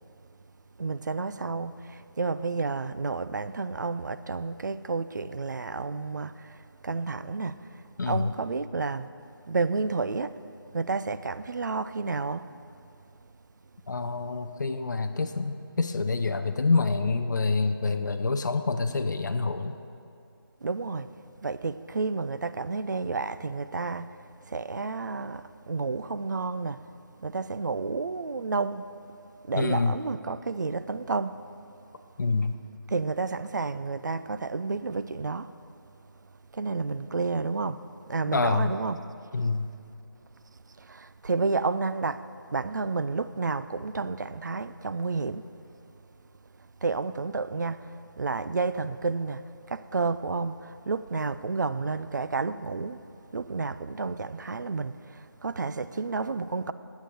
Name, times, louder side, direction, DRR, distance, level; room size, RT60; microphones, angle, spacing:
voice 1, 0.8-6.6 6.8-7.6 8.0-9.1 9.5-10.4 10.7-12.5 20.6-21.1 21.4-24.2 24.5-26.8 27.2-28.9 29.5-31.4 32.9-35.5 36.5-37.8 38.1-39.0 40.8-42.2 42.5-45.5 46.8-53.0 53.3-56.7, right 4 dB, 50° right, 0.4 m, -30 dB
voice 2, 8.0-8.3 13.9-19.8 29.5-30.0 32.2-32.6 38.3-38.7 39.3-39.7, left 3 dB, 50° left, 0.6 m, -27 dB
10.5 x 8.4 x 7.8 m
figure-of-eight pair, 165°, 12 cm